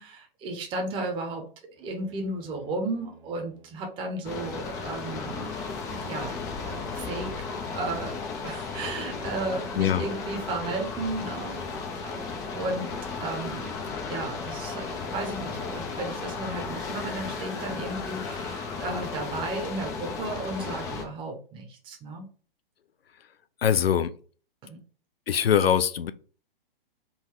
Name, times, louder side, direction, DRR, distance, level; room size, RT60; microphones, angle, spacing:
voice 1, 0.0-5.5 5.9-6.4 6.6-7.3 7.7-11.6 11.9-12.3 12.5-12.9 13.2-13.7 14.1-22.3 24.7-24.8, right 2 dB, 15° right, 0.7 m, -34 dB
sound 1, 1.7-4.0, right 1 dB, 70° right, 1.5 m, -57 dB
sound 2, 4.2-21.0, left 4 dB, 10° left, 0.3 m, -35 dB
voice 2, 9.8-10.1 23.6-24.1 25.3-26.1, left 8 dB, 90° left, 0.5 m, -22 dB
3.9 x 2.2 x 4.4 m
hypercardioid pair, 125°, 29 cm